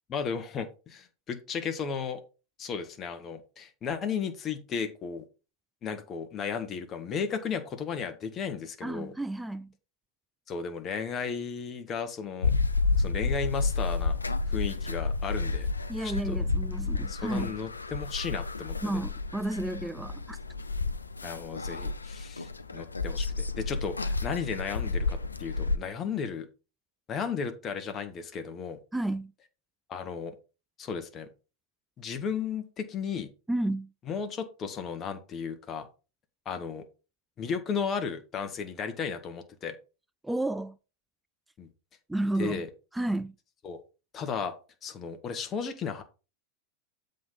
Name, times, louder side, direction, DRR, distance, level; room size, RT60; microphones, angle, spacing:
voice 1, 0.1-2.2 2.6-5.2 5.8-9.1 10.5-12.5 13.0-14.2 14.5-15.7 16.0-16.4 17.1-19.0 21.2-26.5 27.1-28.8 29.9-30.3 30.8-31.3 32.0-33.3 34.1-35.9 36.4-36.8 37.4-39.7 41.6-41.7 42.4-42.7 43.6-43.8 44.1-44.5 44.8-46.0, left 6 dB, 25° left, 1.1 m, -34 dB
voice 2, 8.8-9.7 15.9-17.5 18.8-20.4 28.9-29.3 33.5-33.9 40.2-40.8 42.1-42.6 42.9-43.3, right 1 dB, 5° right, 0.3 m, -31 dB
sound 1, 12.4-25.8, left 3 dB, 80° left, 0.5 m, -31 dB
7.5 x 3.9 x 5.5 m
figure-of-eight pair, 90°, 0 cm